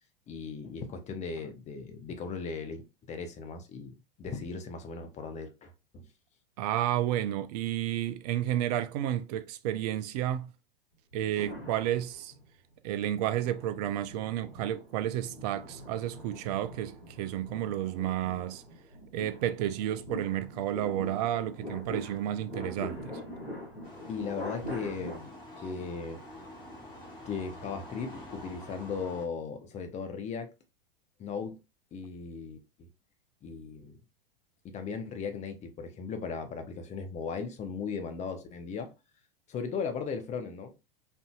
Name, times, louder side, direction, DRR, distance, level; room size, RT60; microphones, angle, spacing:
voice 1, 0.3-2.8 3.1-6.1 24.1-26.2 27.3-30.5 31.2-31.6 31.9-32.9 33.4-34.0 34.6-38.9 39.5-40.7, left 5 dB, 25° left, 0.8 m, -37 dB
voice 2, 6.6-10.5 11.1-12.3 12.8-18.6 19.1-23.2, right 12 dB, 45° right, 0.4 m, -31 dB
sound 1, 11.1-12.5 13.1-25.2, equal, 90° left, 1.7 m, -43 dB
sound 2, 23.8-29.3, left 1 dB, 60° left, 1.7 m, -47 dB
4.5 x 2.6 x 2.3 m
figure-of-eight pair, 90°, 29 cm